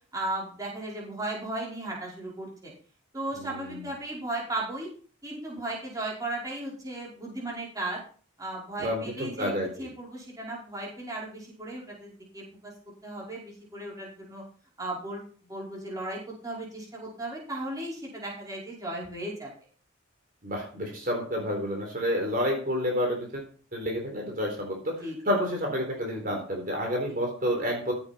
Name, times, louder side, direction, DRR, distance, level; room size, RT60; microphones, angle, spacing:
voice 1, 0.1-2.7 3.1-4.9 5.2-8.0 8.4-9.5 9.8-12.7 13.0-14.4 14.8-15.2 15.5-19.5 25.0-25.1, right 2 dB, 15° right, -4 dB, 5.3 m, -36 dB
voice 2, 3.3-3.9 8.8-9.9 20.4-23.4 23.7-27.9, equal, 45° right, 0 dB, 4.0 m, -30 dB
15.0 x 8.6 x 4.5 m, 0.41 s
head